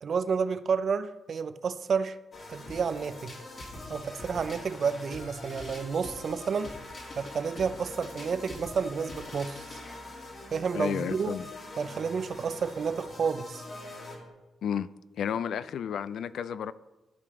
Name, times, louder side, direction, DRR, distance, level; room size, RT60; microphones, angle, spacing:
voice 1, 0.0-2.2 2.5-3.3 3.9-6.7 7.2-9.8 10.5-11.4 11.8-13.6, right 6 dB, 60° right, 0.5 m, -30 dB
sound 1, 2.3-14.3, left 2 dB, 55° left, 2.5 m, -43 dB
voice 2, 10.7-11.4 14.6-14.9 15.2-16.7, left 8 dB, 75° left, 0.3 m, -32 dB
14.0 x 4.9 x 3.7 m
cardioid pair, 70°, 0 cm